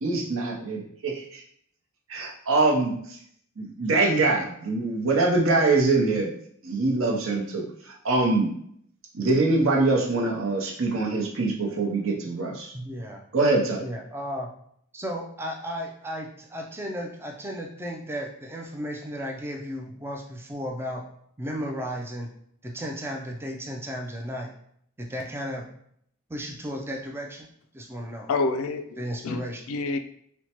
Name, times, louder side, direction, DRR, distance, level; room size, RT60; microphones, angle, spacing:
voice 1, 0.0-1.4 2.1-3.2 3.6-6.3 6.6-8.5 9.1-12.7 13.3-13.8, right 3 dB, 70° right, 0 dB, 0.7 m, -24 dB
voice 2, 12.7-13.2 13.8-14.5 14.9-21.1 21.4-22.3 22.6-24.5 25.0-25.7 26.3-27.5 27.7-28.3 29.0-29.6, equal, 10° right, 1 dB, 0.3 m, -34 dB
voice 3, 28.3-29.4 29.7-30.0, left 3 dB, 75° left, 8 dB, 0.3 m, -28 dB
4.4 x 2.1 x 2.8 m, 0.68 s
head